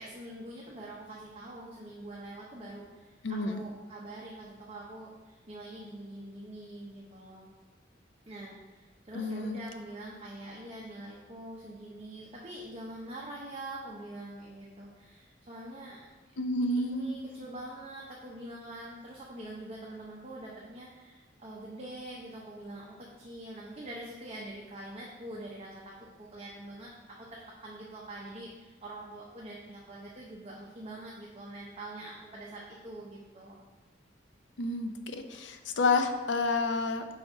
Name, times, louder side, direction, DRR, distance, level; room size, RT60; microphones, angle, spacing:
voice 1, 0.0-7.5 8.3-16.1 16.7-33.6, right 1 dB, 35° right, -4 dB, 0.7 m, -44 dB
voice 2, 3.2-3.6 9.1-9.6 16.4-17.1 34.6-37.1, left 3 dB, 80° left, 7 dB, 0.6 m, -29 dB
4.9 x 4.0 x 4.8 m, 1.3 s
head